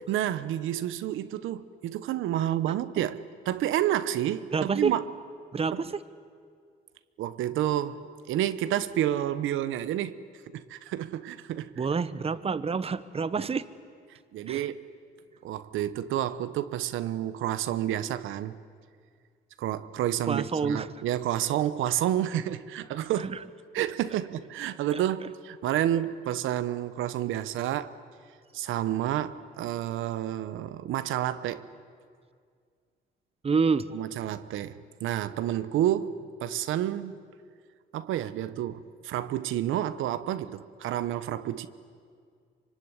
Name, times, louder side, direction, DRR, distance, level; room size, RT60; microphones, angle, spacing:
voice 1, 0.1-5.0 5.7-5.8 7.2-10.2 10.5-11.7 14.3-14.8 15.4-18.6 19.6-23.3 23.7-27.9 28.5-31.7 33.9-37.1 37.9-41.7, right 12 dB, 85° right, 1.0 m, -30 dB
voice 2, 4.5-5.0 5.5-6.0 11.8-13.7 14.5-14.7 20.3-20.9 23.2-23.4 24.9-25.0 33.4-33.9, right 5 dB, 30° right, 1.0 m, -28 dB
25.0 x 24.5 x 9.8 m
cardioid pair, 90°, 20 cm